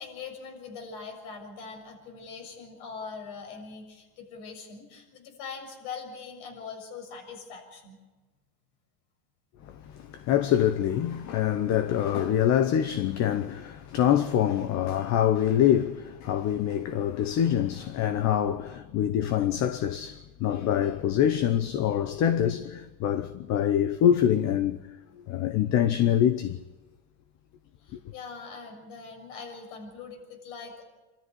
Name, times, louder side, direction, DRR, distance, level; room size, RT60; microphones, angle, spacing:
voice 1, 0.0-8.0 27.8-30.8, left 5 dB, 65° left, 6.9 m, -42 dB
voice 2, 9.7-24.9 25.2-26.6 27.9-28.0, left 10 dB, 40° left, 0.9 m, -25 dB
26.0 x 13.5 x 9.9 m
supercardioid pair, 145°, 43 cm